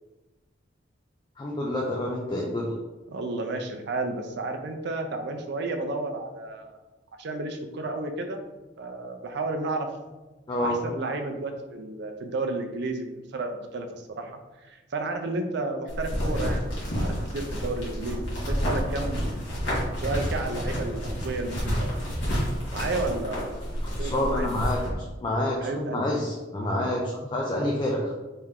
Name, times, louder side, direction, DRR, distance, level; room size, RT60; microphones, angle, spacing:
voice 1, 1.4-2.7 10.5-10.8 24.0-28.1, left 1 dB, 25° left, -2 dB, 0.4 m, -28 dB
voice 2, 3.1-6.8 7.2-8.4 8.8-9.9 10.6-19.3 20.0-21.9 22.7-23.6 24.0-24.5 25.6-26.1, right 2 dB, 65° right, 5 dB, 0.5 m, -32 dB
sound 1, 15.9-24.9, equal, 70° left, 1.4 m, -29 dB
3.3 x 2.9 x 3.6 m, 1.1 s
head